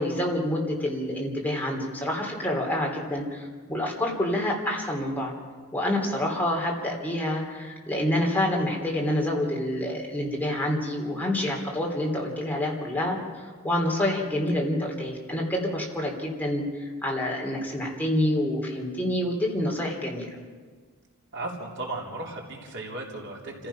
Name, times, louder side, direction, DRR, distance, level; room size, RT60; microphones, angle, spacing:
voice 1, 0.0-5.3 5.7-20.3, left 1 dB, 10° left, -1 dB, 3.3 m, -27 dB
voice 2, 21.3-23.7, right 2 dB, 55° right, -2 dB, 3.7 m, -35 dB
29.5 x 15.0 x 5.8 m, 1.5 s
head